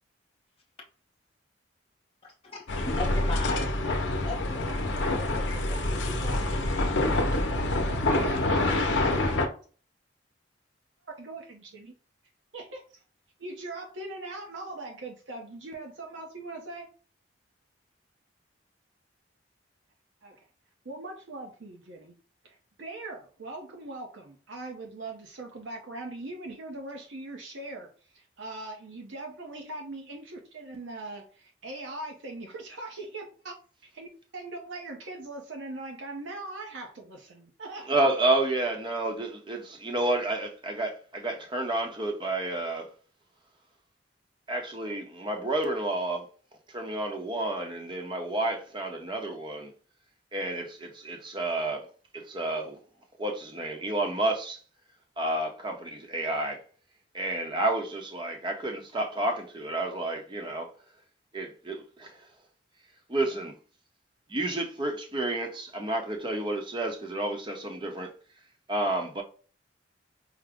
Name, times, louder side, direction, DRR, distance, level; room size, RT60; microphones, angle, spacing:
voice 1, 2.2-3.7 4.2-4.7 5.3-5.7, left 2 dB, 30° left, 0.7 m, -38 dB
sound 1, 2.7-9.5, left 2 dB, 70° left, 0.7 m, -26 dB
voice 2, 4.1-4.9 5.2-6.7 7.1-7.5 7.9-9.4 11.2-11.9 12.5-13.0 13.4-16.9 20.2-20.5 20.8-22.1 22.4-33.5 33.9-34.1 34.3-37.9, right 2 dB, 75° right, 0.7 m, -41 dB
voice 3, 37.9-42.9 44.5-46.3 46.7-49.7 50.3-51.9 52.1-52.8 53.2-54.6 55.2-56.6 57.1-60.7 61.3-62.3 63.1-63.6 64.3-68.1 68.7-69.2, right 2 dB, 25° right, 0.7 m, -30 dB
4.8 x 2.0 x 3.4 m
head